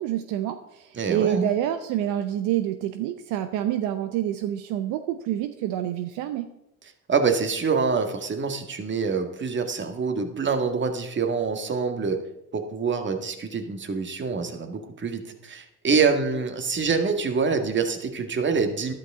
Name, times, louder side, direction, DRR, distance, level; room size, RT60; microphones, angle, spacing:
voice 1, 0.0-6.5, right 12 dB, 70° right, 9 dB, 0.8 m, -27 dB
voice 2, 1.0-1.5 7.1-12.2 12.5-18.9, right 5 dB, 35° right, 6 dB, 1.8 m, -25 dB
12.5 x 11.5 x 3.7 m, 0.86 s
supercardioid pair, 75°, 33 cm